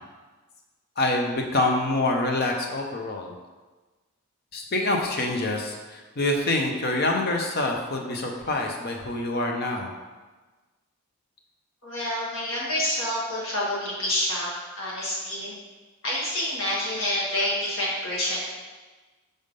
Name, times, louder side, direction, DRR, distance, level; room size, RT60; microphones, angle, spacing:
voice 1, 1.0-3.3 4.5-9.9, left 2 dB, 45° left, 1 dB, 0.7 m, -26 dB
voice 2, 11.8-14.5 14.8-15.6 16.0-18.4, left 1 dB, 60° left, -6 dB, 1.9 m, -28 dB
5.4 x 3.5 x 5.2 m, 1.3 s
head